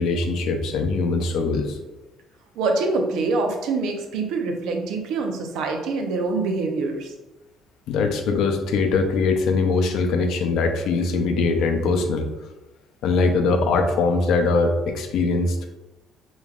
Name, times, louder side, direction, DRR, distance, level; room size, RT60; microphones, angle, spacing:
voice 1, 0.0-1.8 7.9-12.3 13.0-15.7, left 3 dB, 70° left, 5 dB, 0.6 m, -22 dB
voice 2, 2.6-7.1, right 3 dB, 85° right, 3 dB, 0.7 m, -25 dB
5.2 x 3.1 x 2.4 m, 1.0 s
cardioid pair, 155°, 0 cm